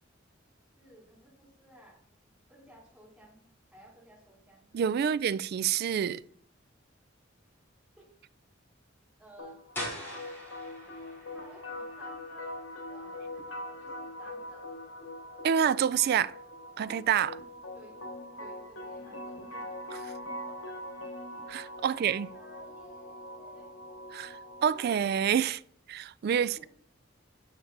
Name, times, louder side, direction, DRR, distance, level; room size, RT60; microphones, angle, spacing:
voice 1, 0.8-2.0 2.5-4.7 5.0-5.1 8.0-8.1 9.2-10.3 11.3-12.6 12.9-14.6 17.7-18.0 18.4-19.8 20.4-20.8 21.8-23.7 26.4-26.7, right 1 dB, 5° right, 2.8 m, -56 dB
voice 2, 4.7-6.2 15.4-16.3 16.8-17.4 21.5-22.3 24.1-25.6 25.9-26.6, right 8 dB, 55° right, 0.3 m, -27 dB
sound 1, 9.4-25.4, left 1 dB, 80° left, 1.8 m, -43 dB
sound 2, 9.7-15.4, equal, 10° left, 2.9 m, -45 dB
7.2 x 6.7 x 3.8 m
head